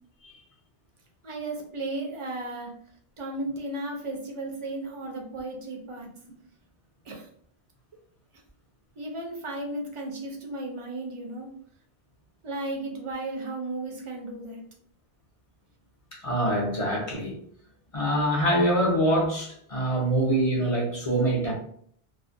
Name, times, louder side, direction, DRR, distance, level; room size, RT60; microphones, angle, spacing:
voice 1, 1.2-2.7 3.2-6.1 7.1-7.3 9.0-11.5 12.4-14.6, right 2 dB, 40° right, 0 dB, 0.5 m, -34 dB
voice 2, 16.1-17.4 17.9-21.5, right 1 dB, 40° left, -2 dB, 0.6 m, -25 dB
2.4 x 2.1 x 2.5 m, 0.62 s
omnidirectional pair, 1.1 m